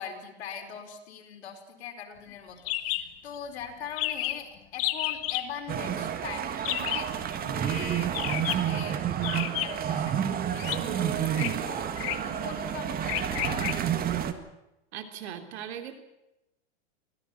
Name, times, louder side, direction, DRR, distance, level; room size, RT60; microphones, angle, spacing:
voice 1, 0.0-13.9, left 7 dB, 80° left, 3 dB, 4.9 m, -42 dB
sound 1, 2.7-3.0 3.3-3.4 3.6-3.7 4.0-4.4 4.8-5.5 6.6-7.1 8.1-8.7 9.2-9.9 10.6-10.8 11.3-11.5 12.0-12.3 13.1-13.7, left 15 dB, 45° left, 1.7 m, -31 dB
sound 2, 5.7-14.3, right 9 dB, 30° right, 1.8 m, -30 dB
voice 2, 14.9-16.0, right 9 dB, 75° right, 6 dB, 3.5 m, -39 dB
24.5 x 17.5 x 7.4 m, 0.91 s
supercardioid pair, 125°, 32 cm